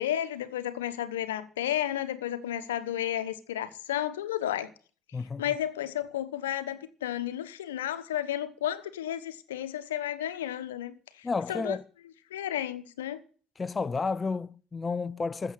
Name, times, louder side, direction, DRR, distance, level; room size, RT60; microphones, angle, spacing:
voice 1, 0.0-4.7 5.4-11.8 12.3-13.2, left 11 dB, 80° left, 1.1 m, -32 dB
voice 2, 5.1-5.5 11.2-11.8 13.6-15.5, left 4 dB, 25° left, 0.7 m, -31 dB
14.5 x 7.8 x 9.9 m
hypercardioid pair, 55°, 0 cm